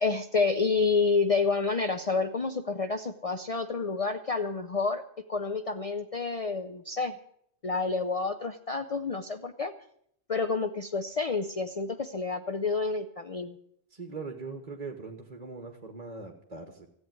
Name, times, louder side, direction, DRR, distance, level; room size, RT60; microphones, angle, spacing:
voice 1, 0.0-5.0 5.3-7.2 7.6-9.7 10.3-13.6, left 4 dB, 40° left, 7 dB, 0.6 m, -29 dB
voice 2, 13.9-16.9, right 4 dB, 40° right, 4 dB, 1.4 m, -41 dB
14.5 x 8.4 x 9.2 m, 0.69 s
omnidirectional pair, 1.1 m